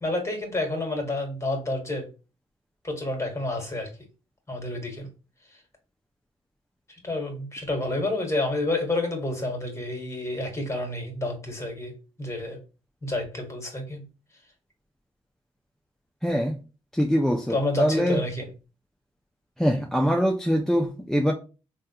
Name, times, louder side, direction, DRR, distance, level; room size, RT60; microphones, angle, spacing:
voice 1, 0.0-2.1 2.8-3.9 4.5-5.1 6.9-12.6 13.0-14.0 17.5-18.5, left 2 dB, 20° left, 1.3 m, -29 dB
voice 2, 16.2-16.6 16.9-18.2 19.6-21.3, equal, 5° left, 0.4 m, -23 dB
3.3 x 2.3 x 2.7 m
supercardioid pair, 55°, 14 cm